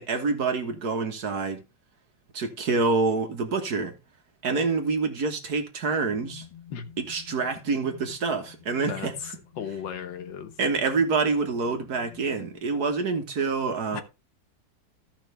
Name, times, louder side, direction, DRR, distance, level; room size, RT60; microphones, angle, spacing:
voice 1, 0.0-1.6 2.3-3.9 4.4-6.4 7.0-9.1 10.6-14.0, right 4 dB, 55° right, 1.8 m, -26 dB
sound 1, 6.0-12.8, left 10 dB, 25° left, 1.9 m, -49 dB
voice 2, 9.6-10.5 13.9-14.0, left 8 dB, 75° left, 1.7 m, -35 dB
14.5 x 5.7 x 3.3 m
omnidirectional pair, 2.0 m